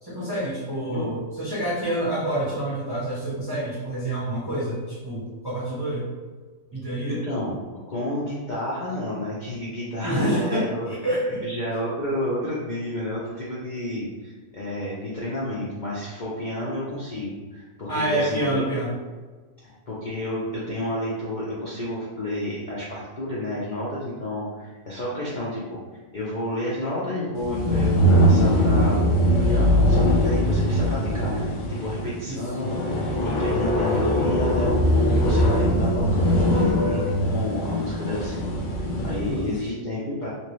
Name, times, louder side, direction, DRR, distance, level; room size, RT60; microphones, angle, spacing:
voice 1, 0.0-6.1 6.7-7.2 10.0-11.4 17.9-18.9 32.2-32.4 39.1-39.5, right 1 dB, 20° right, -8 dB, 0.7 m, -27 dB
voice 2, 7.2-7.6 7.9-10.9 11.4-18.6 19.6-25.8 26.1-31.5 31.8-38.4 39.0-40.3, left 1 dB, 50° left, -7 dB, 0.6 m, -30 dB
sound 1, 27.4-39.4, equal, 70° left, 1.0 m, -21 dB
2.9 x 2.8 x 3.0 m, 1.4 s
omnidirectional pair, 1.4 m